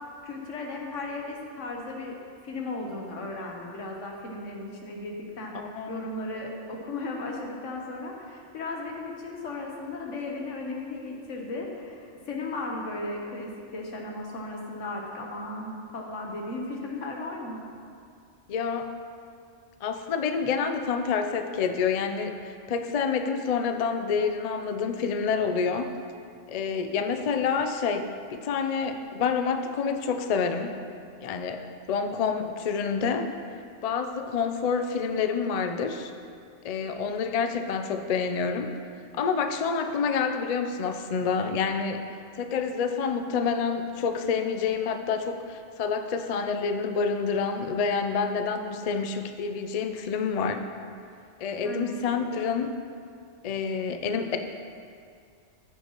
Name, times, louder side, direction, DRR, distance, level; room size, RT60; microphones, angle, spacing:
voice 1, 0.2-2.1 2.4-5.6 5.9-17.6 51.6-52.2, left 2 dB, 85° left, 0 dB, 1.4 m, -36 dB
voice 2, 5.5-6.0 18.5-18.9 19.8-25.9 26.5-30.7 31.2-31.6 31.9-33.3 33.8-36.1 36.6-38.7 39.1-42.0 42.4-50.6 51.4-52.8 53.4-54.4, left 5 dB, 55° left, 7 dB, 0.4 m, -28 dB
14.5 x 5.5 x 3.0 m, 2.3 s
omnidirectional pair, 1.3 m